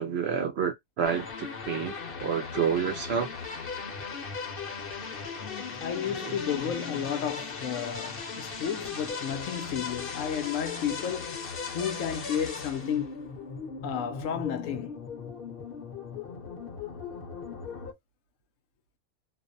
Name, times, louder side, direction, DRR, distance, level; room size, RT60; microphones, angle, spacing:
voice 1, 0.0-3.3 6.2-6.3, right 7 dB, 65° right, 0.7 m, -29 dB
sound 1, 1.0-17.9, left 5 dB, 50° left, 0.8 m, -38 dB
voice 2, 5.4-11.4 11.7-13.1 13.8-15.0, left 8 dB, 70° left, 0.9 m, -32 dB
2.5 x 2.1 x 2.5 m
omnidirectional pair, 1.5 m